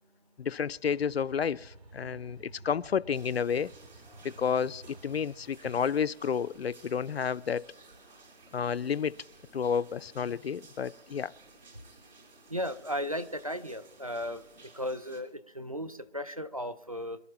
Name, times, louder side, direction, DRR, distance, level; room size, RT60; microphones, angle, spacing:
voice 1, 0.4-3.7 4.2-7.7 8.5-9.2 9.5-11.3, left 7 dB, 70° left, 0.5 m, -31 dB
sound 1, 0.8-5.8, right 2 dB, 75° right, 3.7 m, -53 dB
sound 2, 3.1-15.2, right 3 dB, 55° right, 3.4 m, -55 dB
voice 2, 12.5-14.4 14.7-17.2, equal, 35° right, 0.5 m, -35 dB
26.0 x 12.5 x 3.0 m
hypercardioid pair, 170°, 33 cm